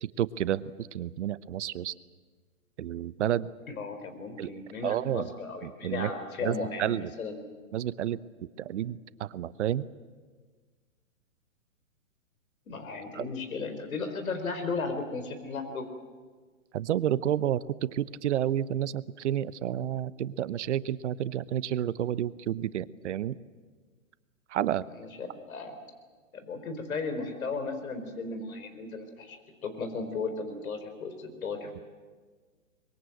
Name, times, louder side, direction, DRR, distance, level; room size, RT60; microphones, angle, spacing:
voice 1, 0.0-1.9 2.8-3.5 4.4-4.5 4.8-5.3 5.6-6.1 6.4-7.1 7.7-8.2 8.6-9.9 13.1-13.2 16.7-23.4 24.5-24.8, right 11 dB, 55° right, 17 dB, 0.9 m, -30 dB
voice 2, 3.7-7.4 12.7-15.9 25.0-25.7 26.3-29.4 29.6-31.8, left 4 dB, 80° left, 7 dB, 4.5 m, -35 dB
24.0 x 22.5 x 7.9 m, 1.5 s
hypercardioid pair, 140°, 42 cm